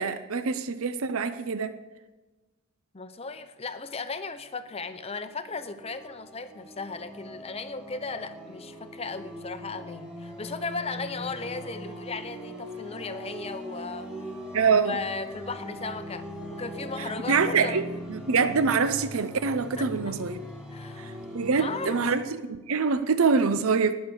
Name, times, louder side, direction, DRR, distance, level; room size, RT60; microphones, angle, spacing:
voice 1, 0.0-1.8 14.5-15.0 17.3-17.8 18.1-20.4 21.0-23.9, right 5 dB, 70° right, 11 dB, 0.6 m, -25 dB
voice 2, 2.9-14.1 14.8-17.8 19.8-20.2 20.7-21.2 21.6-22.1, left 4 dB, 25° left, 10 dB, 0.7 m, -36 dB
sound 1, 4.2-22.2, equal, 5° right, 2.1 m, -40 dB
19.5 x 6.5 x 7.0 m, 1.2 s
head